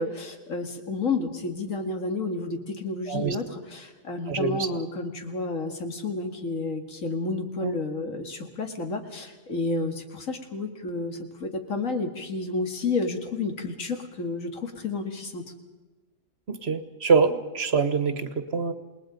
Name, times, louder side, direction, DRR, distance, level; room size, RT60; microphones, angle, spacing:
voice 1, 0.0-15.4, left 3 dB, 90° left, 5 dB, 2.4 m, -31 dB
voice 2, 4.3-4.8 7.6-7.7 16.5-18.7, right 5 dB, 55° right, 11 dB, 1.4 m, -25 dB
28.0 x 20.0 x 5.2 m, 1.2 s
omnidirectional pair, 1.3 m